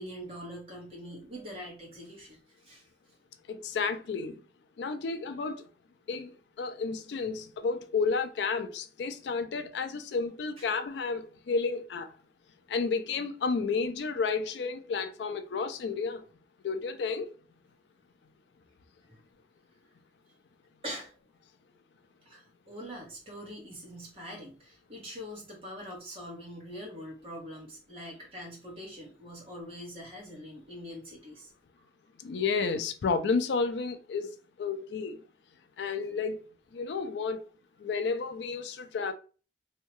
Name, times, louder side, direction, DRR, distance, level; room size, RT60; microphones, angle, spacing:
voice 1, 0.0-2.9 10.6-10.7 19.1-19.2 20.8-21.1 22.2-31.5, equal, 35° right, 1.1 m, -43 dB
voice 2, 3.5-4.4 4.8-5.7 6.1-12.1 12.7-16.3 16.6-17.3 32.2-34.3 34.6-35.2 35.8-36.4 36.7-37.4 37.8-39.1, left 4 dB, 80° left, 0.4 m, -31 dB
2.7 x 2.2 x 2.9 m
head